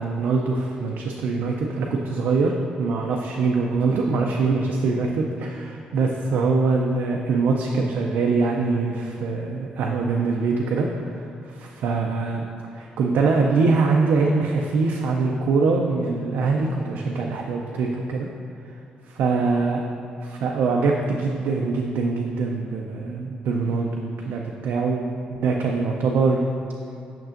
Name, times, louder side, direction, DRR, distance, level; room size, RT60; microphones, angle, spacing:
voice 1, 0.0-2.5 2.8-12.4 12.7-18.3 19.1-19.9 20.2-25.1 25.4-26.4, right 4 dB, 75° right, 0 dB, 0.4 m, -23 dB
6.4 x 6.0 x 2.5 m, 2.6 s
supercardioid pair, 55°, 3 cm